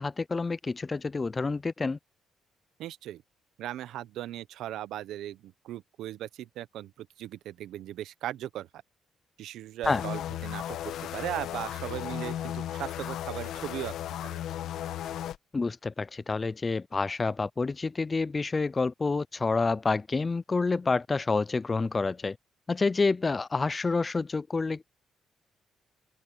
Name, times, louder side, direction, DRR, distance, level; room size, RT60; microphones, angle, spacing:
voice 1, 0.0-2.0 9.9-10.0 15.5-22.4 22.7-24.8, left 3 dB, 25° left, 0.4 m, -28 dB
voice 2, 2.8-3.2 3.6-8.7 9.4-13.9 14.2-14.4, right 13 dB, 80° right, 0.8 m, -38 dB
sound 1, 9.8-15.4, left 11 dB, 80° left, 1.6 m, -35 dB
open air
cardioid pair, 90°, 0 cm